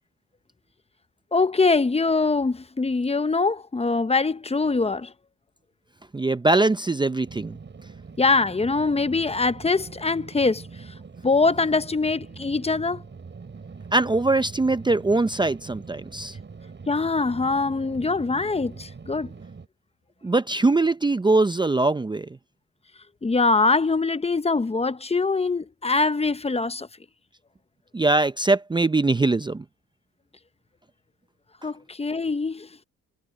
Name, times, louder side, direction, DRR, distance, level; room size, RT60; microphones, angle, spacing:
voice 1, 1.3-5.1 8.2-10.7 11.2-13.0 16.9-19.3 23.2-26.9 31.6-32.7, left 3 dB, 20° left, 0.8 m, -23 dB
voice 2, 6.1-7.6 13.9-16.4 20.2-22.3 27.9-29.6, right 2 dB, 15° right, 0.6 m, -22 dB
sound 1, 7.2-19.7, right 5 dB, 35° right, 5.4 m, -42 dB
cardioid pair, 85°, 32 cm